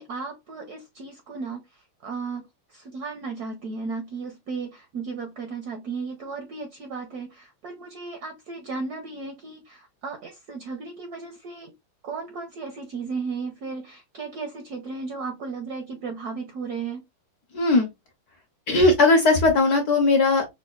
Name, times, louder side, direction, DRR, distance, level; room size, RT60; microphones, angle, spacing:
voice 1, 0.0-2.4 2.7-11.7 12.0-17.0, right 4 dB, 75° right, 0.9 m, -35 dB
voice 2, 17.5-17.9 18.7-20.4, left 3 dB, 60° left, 1.1 m, -18 dB
5.1 x 2.2 x 2.3 m
omnidirectional pair, 2.4 m